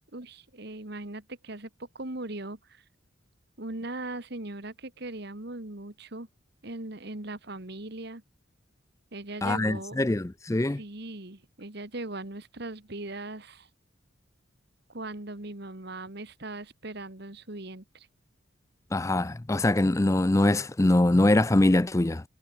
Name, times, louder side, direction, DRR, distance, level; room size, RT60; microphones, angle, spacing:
voice 1, 0.1-2.8 3.6-6.3 6.6-8.2 9.1-10.0 10.8-13.7 14.9-18.1, right 2 dB, 55° right, 1.9 m, -39 dB
voice 2, 9.4-10.8 18.9-22.2, left 1 dB, 15° left, 0.4 m, -23 dB
head